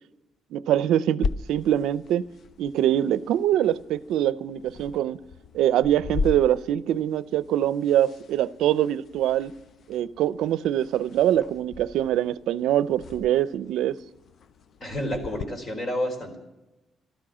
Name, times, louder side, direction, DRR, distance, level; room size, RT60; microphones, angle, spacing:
voice 1, 0.5-2.2 2.6-5.2 5.5-9.5 9.9-13.9, right 11 dB, 85° right, 0.5 m, -24 dB
sound 1, 1.2-15.4, left 4 dB, 60° left, 0.5 m, -38 dB
voice 2, 14.8-16.4, equal, 40° left, 4.0 m, -30 dB
13.0 x 12.5 x 7.3 m
cardioid pair, 90°, 0 cm